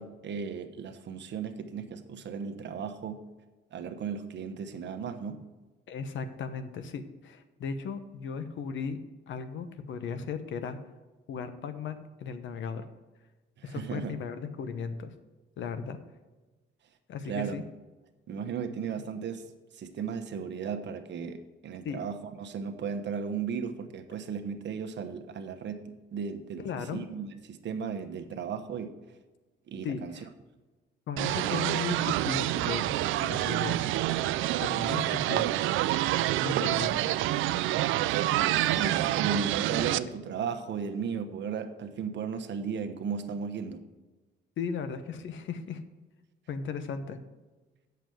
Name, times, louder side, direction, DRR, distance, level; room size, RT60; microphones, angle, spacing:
voice 1, 0.0-3.2 3.7-5.4 13.6-14.2 17.3-17.5 18.3-19.4 19.7-25.8 26.1-26.7 26.9-28.9 29.7-30.1 38.1-43.8, right 6 dB, 65° right, 7 dB, 1.2 m, -35 dB
voice 2, 5.9-9.0 9.3-10.8 11.3-12.9 13.6-15.1 15.6-16.0 17.1-17.6 21.8-22.0 26.6-27.0 29.8-30.3 31.1-33.8 34.6-35.6 36.4-37.1 40.1-40.2 44.6-45.8 46.5-47.2, left 6 dB, 75° left, 10 dB, 1.1 m, -36 dB
sound 1, 31.2-40.0, right 15 dB, 90° right, 0.4 m, -27 dB
8.2 x 6.8 x 7.7 m, 1.2 s
cardioid pair, 90°, 20 cm